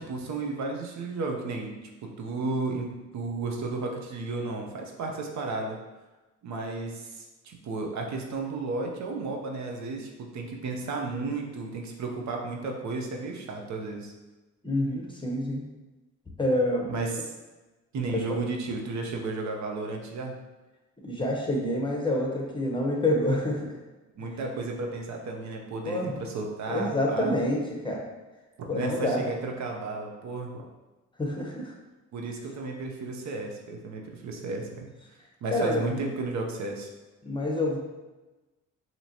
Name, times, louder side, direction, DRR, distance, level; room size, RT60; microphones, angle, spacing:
voice 1, 0.0-1.7 2.0-5.8 6.4-14.1 16.9-17.3 17.9-20.3 24.2-27.3 28.6-30.7 32.1-34.9 35.4-36.9, right 3 dB, 70° right, 1 dB, 0.8 m, -33 dB
voice 2, 14.6-15.6 16.4-16.9 18.1-18.2 21.0-23.7 25.8-26.1 26.7-28.0 28.7-29.2 31.2-31.7 35.5-35.9 37.2-37.8, left 1 dB, 15° left, -1 dB, 1.0 m, -27 dB
5.7 x 2.9 x 2.9 m, 1.1 s
cardioid pair, 90°, 30 cm